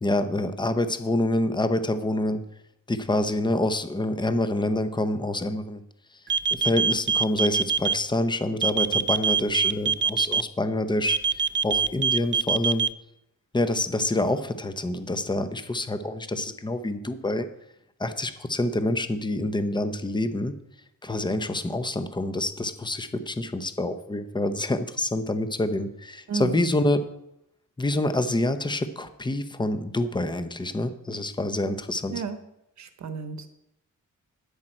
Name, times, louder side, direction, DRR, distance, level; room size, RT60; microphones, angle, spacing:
voice 1, 0.0-2.4 2.9-5.8 6.5-12.9 13.5-17.5 18.0-20.5 21.0-27.0 27.8-32.2, left 1 dB, 15° left, 10 dB, 0.8 m, -27 dB
sound 1, 6.3-7.9 8.6-10.4 11.1-12.9, right 6 dB, 35° right, 0.4 m, -23 dB
voice 2, 32.8-33.5, right 5 dB, 55° right, 9 dB, 1.0 m, -32 dB
10.5 x 8.8 x 4.4 m, 0.82 s
cardioid pair, 105°, 33 cm